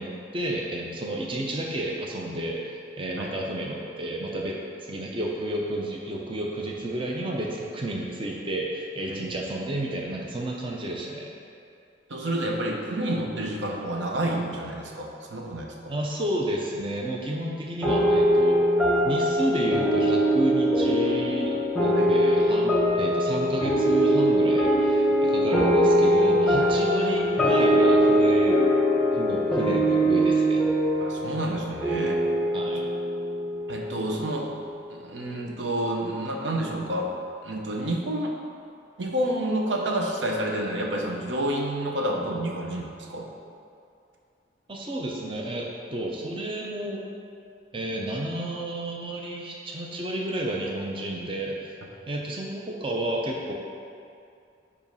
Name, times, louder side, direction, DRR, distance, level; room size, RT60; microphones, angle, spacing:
voice 1, 0.0-11.3 15.9-18.6 19.0-28.6 29.1-30.6 32.5-32.9 44.7-47.0 47.7-51.7 52.1-53.5, right 1 dB, 30° right, -2 dB, 0.6 m, -31 dB
voice 2, 12.1-15.9 21.9-22.1 26.6-26.7 31.0-32.2 33.7-34.5 34.9-37.1 37.4-38.3 39.0-43.3, right 1 dB, 75° right, 1 dB, 0.8 m, -29 dB
sound 1, 17.8-34.6, equal, 5° left, 1.0 m, -22 dB
5.1 x 4.9 x 5.3 m, 2.5 s
head